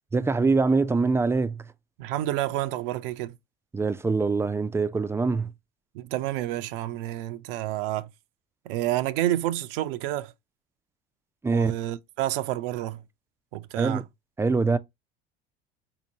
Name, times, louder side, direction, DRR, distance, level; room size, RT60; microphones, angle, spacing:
voice 1, 0.1-1.7 3.7-5.5 11.4-11.7 13.8-14.0 14.4-14.8, right 4 dB, 10° right, 0.3 m, -24 dB
voice 2, 2.0-3.4 5.9-8.1 8.7-10.3 11.5-13.0 13.5-14.0, right 14 dB, 70° right, 0.5 m, -29 dB
4.3 x 2.8 x 2.7 m
hypercardioid pair, 75°, 29 cm